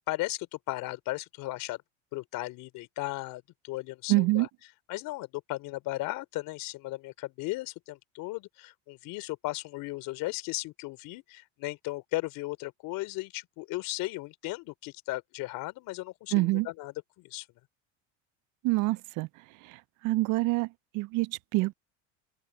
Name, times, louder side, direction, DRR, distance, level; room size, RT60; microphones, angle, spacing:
voice 1, 0.1-1.8 2.1-4.5 4.9-17.5, left 19 dB, 65° left, 3.3 m, -36 dB
voice 2, 4.1-4.5 16.3-16.7 18.6-19.3 20.0-20.7 20.9-21.7, right 21 dB, 55° right, 0.6 m, -26 dB
supercardioid pair, 90°, 36 cm